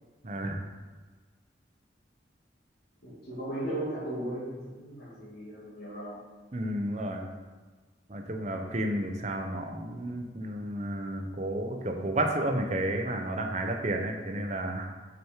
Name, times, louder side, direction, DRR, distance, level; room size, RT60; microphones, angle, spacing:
voice 1, 0.2-0.6 6.5-7.3 8.1-14.9, right 1 dB, 40° right, 3 dB, 0.8 m, -31 dB
voice 2, 3.0-6.1, right 1 dB, 60° left, -10 dB, 2.2 m, -36 dB
6.5 x 5.2 x 4.5 m, 1.3 s
head